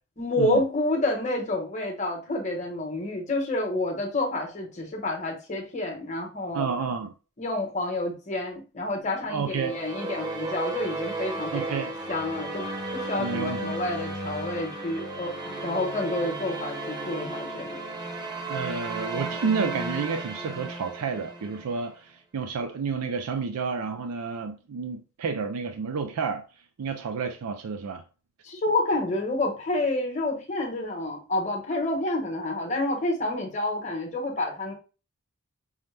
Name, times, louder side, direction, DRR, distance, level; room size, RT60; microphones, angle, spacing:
voice 1, 0.2-6.7 7.4-12.7 12.9-17.8 28.4-34.7, left 2 dB, 30° left, 1.1 m, -29 dB
voice 2, 6.5-7.1 9.3-9.7 11.5-11.9 13.2-13.7 18.5-26.4 26.8-28.0, right 5 dB, 90° right, 0.4 m, -30 dB
sound 1, 9.4-21.8, right 2 dB, 20° right, 0.7 m, -34 dB
5.4 x 2.1 x 3.2 m
head